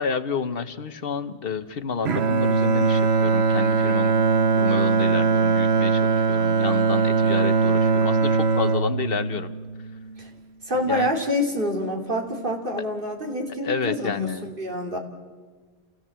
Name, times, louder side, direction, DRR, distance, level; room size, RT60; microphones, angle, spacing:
voice 1, 0.0-4.1 4.6-9.5 10.9-11.1 13.6-14.5, left 6 dB, 65° left, 11 dB, 1.1 m, -30 dB
Bowed string instrument, 2.0-10.3, right 4 dB, 80° right, 1.1 m, -21 dB
voice 2, 10.6-15.0, left 1 dB, 55° right, 1 dB, 3.1 m, -27 dB
28.5 x 16.5 x 7.5 m, 1.4 s
omnidirectional pair, 1.1 m